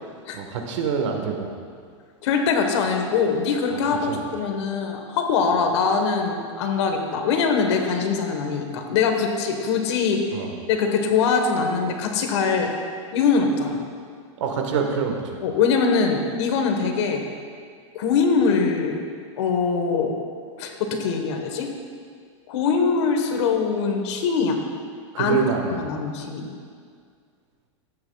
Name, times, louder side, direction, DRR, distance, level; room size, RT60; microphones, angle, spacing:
voice 1, 0.3-1.5 4.1-4.3 10.3-10.5 14.4-15.2 25.1-25.7, right 6 dB, 75° right, 3 dB, 1.4 m, -25 dB
voice 2, 2.2-12.7 13.1-13.8 15.4-17.2 17.9-19.0 19.4-20.1 20.6-21.7 22.5-24.6 25.2-25.4 25.8-26.5, left 5 dB, 65° left, 4 dB, 1.3 m, -22 dB
14.0 x 8.9 x 2.4 m, 2.1 s
supercardioid pair, 140°, 16 cm